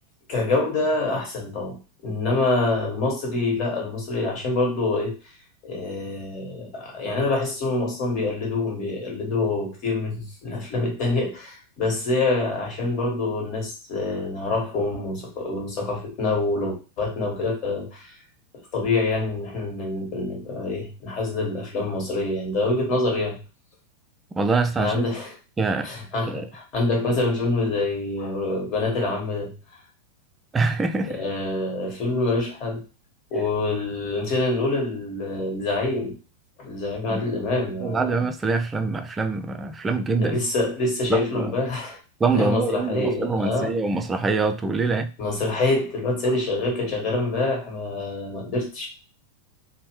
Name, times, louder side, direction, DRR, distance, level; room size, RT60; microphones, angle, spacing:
voice 1, 0.3-5.2 5.6-18.1 18.7-23.4 24.8-25.4 25.8-29.5 31.1-32.8 33.3-36.1 36.6-38.3 40.2-42.0 42.3-43.8 45.2-48.9, left 2 dB, 40° left, 0 dB, 1.3 m, -26 dB
voice 2, 24.4-25.1 25.6-25.9 26.3-26.5 30.5-31.2 37.1-37.3 37.8-40.4 41.1-41.5 42.2-45.1, right 3 dB, 15° right, 7 dB, 0.4 m, -24 dB
2.7 x 2.1 x 3.1 m, 0.34 s
figure-of-eight pair, 90°, 0 cm